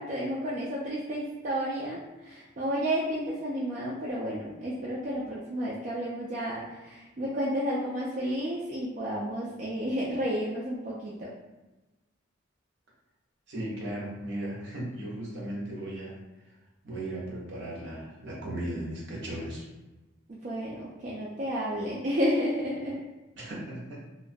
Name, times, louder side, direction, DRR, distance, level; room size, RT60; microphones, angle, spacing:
voice 1, 0.0-11.3 20.3-23.0, equal, 35° right, -7 dB, 0.3 m, -31 dB
voice 2, 13.5-16.2 16.4-16.5 16.8-19.6 23.4-24.0, right 1 dB, 55° right, -5 dB, 0.8 m, -36 dB
2.4 x 2.2 x 2.5 m, 1.1 s
head